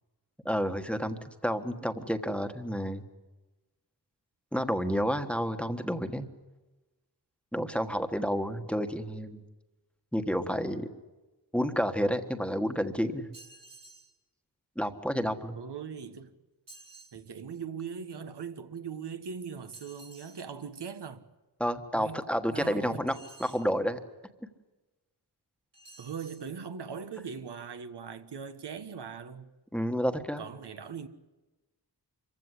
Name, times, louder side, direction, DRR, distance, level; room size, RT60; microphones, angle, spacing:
voice 1, 0.4-3.0 4.5-6.3 7.5-9.4 10.1-10.9 11.5-13.3 14.8-15.6 21.6-24.0 29.7-30.4, equal, 5° left, 1.4 m, -30 dB
sound 1, 13.3-14.1 16.7-17.2 19.7-20.4 23.1-23.7 25.7-26.5, right 3 dB, 50° right, 3.3 m, -52 dB
voice 2, 15.6-16.3 17.1-21.3 21.9-23.1 26.0-29.5 30.4-31.1, right 6 dB, 80° right, 1.4 m, -40 dB
25.5 x 15.5 x 9.8 m
wide cardioid pair, 130°, 40 cm